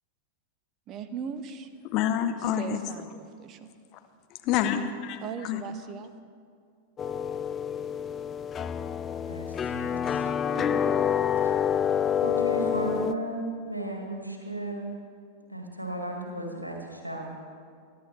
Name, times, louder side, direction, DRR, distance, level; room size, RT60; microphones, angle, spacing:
voice 1, 0.9-1.7 2.5-3.7 5.2-6.1, right 7 dB, 35° right, 11 dB, 0.8 m, -39 dB
voice 2, 1.8-2.8 4.4-5.6, left 10 dB, 40° left, 8 dB, 0.9 m, -27 dB
sound 1, 7.0-13.1, left 8 dB, 25° left, 0.4 m, -27 dB
voice 3, 9.2-10.7 12.2-14.9 15.5-17.3, right 2 dB, 85° right, 0 dB, 2.1 m, -35 dB
21.0 x 11.0 x 3.4 m, 2.3 s
figure-of-eight pair, 90°, 0 cm